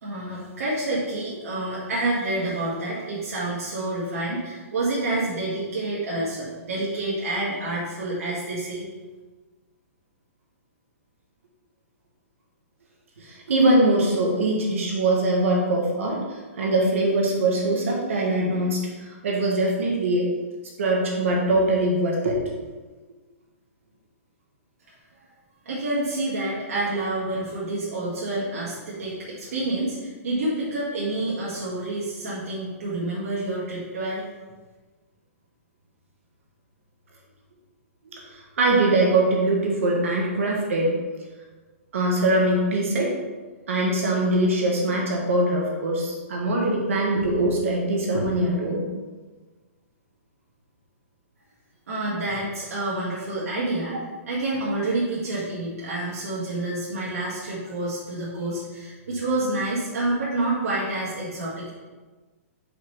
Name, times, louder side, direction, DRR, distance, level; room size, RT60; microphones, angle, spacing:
voice 1, 0.0-8.8 25.7-34.3 51.9-54.0 54.3-61.7, right 2 dB, 80° right, -8 dB, 2.0 m, -28 dB
voice 2, 13.2-16.2 16.6-20.3 20.8-22.4 38.1-38.2 38.6-40.9 41.9-43.1 43.7-48.8, right 1 dB, 65° right, -2 dB, 1.6 m, -22 dB
5.7 x 5.6 x 3.3 m, 1.3 s
hypercardioid pair, 175°, 8 cm